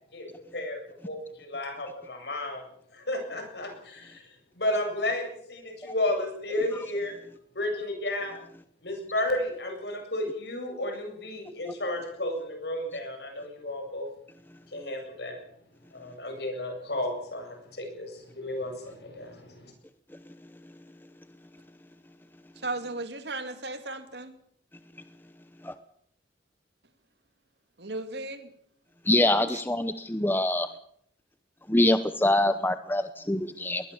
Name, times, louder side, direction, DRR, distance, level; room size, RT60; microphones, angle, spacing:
voice 1, 0.1-0.8 1.1-2.6 2.9-4.2 4.6-7.1 7.5-8.4 8.8-14.1 14.7-15.4 15.9-19.7, left 1 dB, 70° left, 4 dB, 7.9 m, -32 dB
voice 2, 22.6-24.3 27.8-28.5, right 2 dB, 70° right, 8 dB, 2.7 m, -35 dB
voice 3, 29.1-30.7 31.7-33.9, left 1 dB, 10° left, 11 dB, 0.8 m, -25 dB
21.5 x 20.5 x 7.2 m, 0.66 s
head